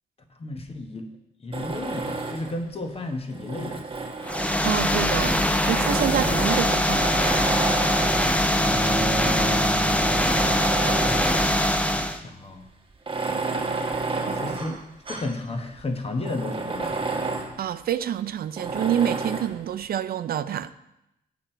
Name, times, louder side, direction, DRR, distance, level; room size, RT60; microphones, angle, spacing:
voice 1, 0.3-1.1 1.4-3.8 8.6-9.7 11.1-12.7 14.3-14.8 15.1-17.0, left 2 dB, 35° left, 5 dB, 1.1 m, -34 dB
Tools, 1.5-2.6 3.3-4.9 5.6-8.5 9.2-9.3 9.8-11.6 12.0-12.1 12.9-15.4 15.8-15.9 16.2-17.6 18.6-19.6, right 3 dB, 30° right, 1.1 m, -30 dB
sound 1, 4.2-12.2, left 1 dB, 10° left, 0.6 m, -22 dB
voice 2, 4.6-7.1 14.3-14.8 17.6-20.7, right 10 dB, 65° right, 12 dB, 0.4 m, -27 dB
Bowed string instrument, 8.6-11.6, right 2 dB, 15° right, 1.4 m, -33 dB
8.5 x 6.1 x 4.4 m, 0.88 s
cardioid pair, 80°, 17 cm